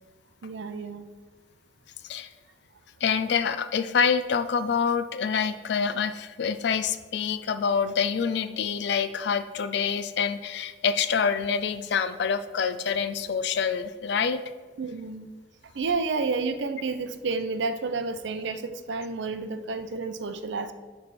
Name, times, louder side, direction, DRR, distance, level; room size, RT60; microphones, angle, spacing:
voice 1, 0.4-1.0 14.8-15.3 15.8-20.7, right 4 dB, 70° right, 9 dB, 0.5 m, -30 dB
voice 2, 3.0-14.4, left 6 dB, 60° left, 12 dB, 0.4 m, -26 dB
10.0 x 3.4 x 4.2 m, 1.4 s
head